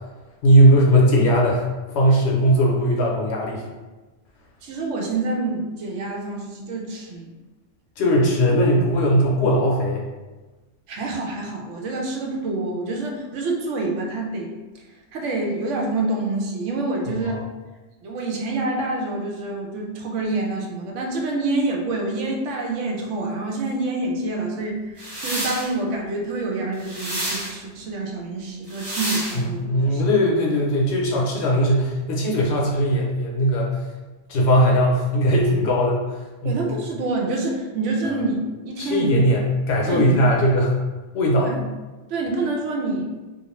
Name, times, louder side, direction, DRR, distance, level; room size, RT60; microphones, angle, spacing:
voice 1, 0.4-1.7 1.9-3.6 8.0-10.0 17.2-17.4 29.4-33.8 34.3-36.7 38.8-40.7 41.1-41.5, equal, 70° left, -2 dB, 0.8 m, -19 dB
voice 2, 4.6-7.3 10.9-14.5 15.1-17.4 18.0-29.7 29.9-30.0 36.4-39.2 39.9-40.1 41.4-41.6 42.1-43.1, right 2 dB, 75° right, 0 dB, 0.9 m, -27 dB
sound 1, 25.0-25.7 26.8-27.5 28.7-29.4, right 1 dB, 30° right, 0.5 m, -29 dB
2.4 x 2.4 x 3.0 m, 1.2 s
omnidirectional pair, 1.3 m